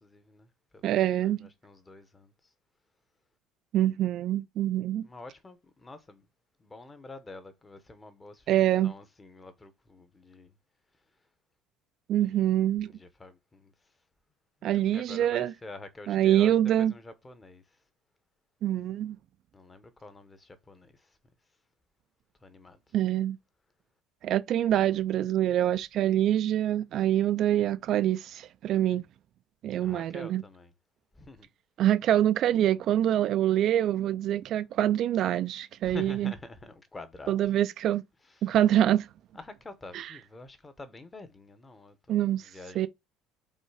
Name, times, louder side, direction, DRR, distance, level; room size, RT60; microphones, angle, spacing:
voice 1, 0.0-2.3 5.0-6.3 6.6-10.5 12.2-12.5 12.9-13.7 14.7-17.6 19.5-21.2 22.4-22.9 29.8-30.7 31.1-31.5 35.8-37.5 38.3-38.6 39.3-42.9, left 2 dB, 15° left, 0.8 m, -47 dB
voice 2, 0.8-1.5 3.7-5.1 8.5-8.9 12.1-12.9 14.6-15.5 16.1-16.9 18.6-19.2 22.9-23.4 24.2-29.0 29.6-30.4 31.8-36.3 37.3-38.0 38.4-39.1 39.9-40.1 42.1-42.5 42.8-42.9, right 12 dB, 45° right, 0.3 m, -25 dB
5.4 x 4.0 x 4.8 m
cardioid pair, 165°, 0 cm